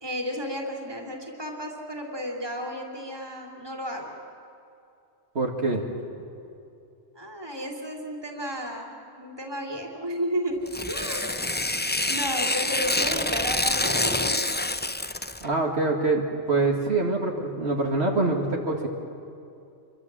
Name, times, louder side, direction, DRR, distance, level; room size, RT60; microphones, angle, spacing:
voice 1, 0.0-4.2 7.1-11.6 12.1-14.5, equal, 20° right, 0 dB, 3.0 m, -33 dB
voice 2, 5.3-5.8 15.4-18.9, right 3 dB, 65° right, 0 dB, 2.3 m, -25 dB
Tearing, 10.7-15.5, left 2 dB, 15° left, 0.3 m, -27 dB
27.5 x 23.5 x 7.5 m, 2.6 s
omnidirectional pair, 1.2 m